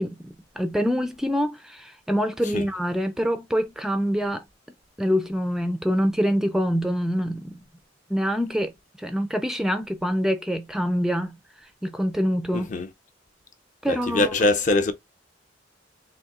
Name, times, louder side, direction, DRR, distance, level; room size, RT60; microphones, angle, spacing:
voice 1, 0.0-4.4 5.0-7.7 8.1-11.4 11.8-12.7 13.8-14.3, equal, ahead, 0.3 m, -25 dB
voice 2, 12.5-12.9 13.9-14.9, left 2 dB, 40° left, 0.6 m, -23 dB
3.7 x 2.7 x 3.6 m
head